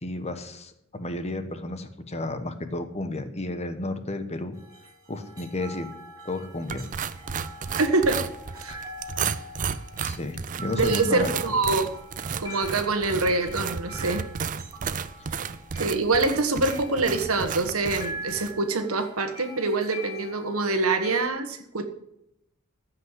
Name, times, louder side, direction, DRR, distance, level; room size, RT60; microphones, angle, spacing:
voice 1, 0.0-4.6 5.1-5.9 6.2-6.9 10.0-11.3, left 2 dB, 30° left, 9 dB, 1.1 m, -32 dB
sound 1, 4.5-21.3, equal, 15° right, 2.7 m, -43 dB
sound 2, 6.7-18.5, right 6 dB, 35° right, 0.5 m, -33 dB
voice 2, 7.8-8.2 8.5-8.8 10.7-11.9 12.4-14.2 15.8-21.9, right 3 dB, 75° right, 7 dB, 1.5 m, -25 dB
15.0 x 5.8 x 8.1 m, 0.80 s
head